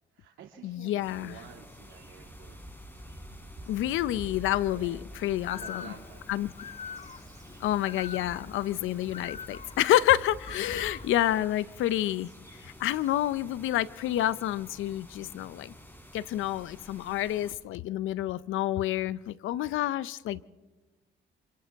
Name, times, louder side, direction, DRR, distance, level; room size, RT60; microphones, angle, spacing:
voice 1, 0.1-2.7 4.7-5.0 5.5-6.2 10.5-10.9, right 8 dB, 85° right, 1 dB, 2.2 m, -51 dB
voice 2, 0.6-1.3 3.7-5.8 6.3-6.5 7.6-15.7 16.1-20.4, left 13 dB, 80° left, 18 dB, 0.6 m, -28 dB
sound 1, 1.0-17.5, left 1 dB, 10° left, 3.8 m, -51 dB
sound 2, 1.8-13.3, equal, 15° right, 7.6 m, -49 dB
Bird, 5.4-11.4, left 7 dB, 35° left, 0.6 m, -45 dB
28.5 x 26.5 x 3.5 m, 1.2 s
cardioid pair, 90°, 20 cm